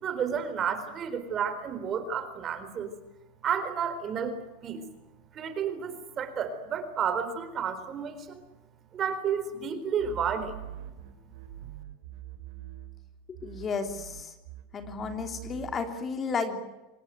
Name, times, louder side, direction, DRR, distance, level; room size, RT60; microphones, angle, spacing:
voice 1, 0.0-2.9 3.4-4.8 5.3-8.4 8.9-10.5, right 7 dB, 30° right, 10 dB, 4.1 m, -31 dB
sound 1, 10.0-13.1 13.3-15.9, right 12 dB, 75° right, 5.0 m, -44 dB
voice 2, 13.4-14.3 14.7-16.6, left 5 dB, 25° left, 7 dB, 3.1 m, -32 dB
26.5 x 19.0 x 9.4 m, 1.0 s
supercardioid pair, 130°, 0 cm